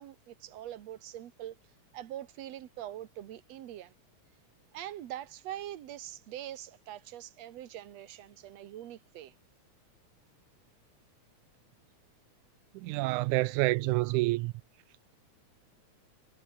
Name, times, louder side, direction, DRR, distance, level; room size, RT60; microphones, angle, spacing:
voice 1, 0.0-1.6 1.9-3.9 4.7-9.3, right 12 dB, 65° right, 2.5 m, -43 dB
voice 2, 12.8-14.5, right 20 dB, 85° right, 2.0 m, -28 dB
omnidirectional pair, 3.4 m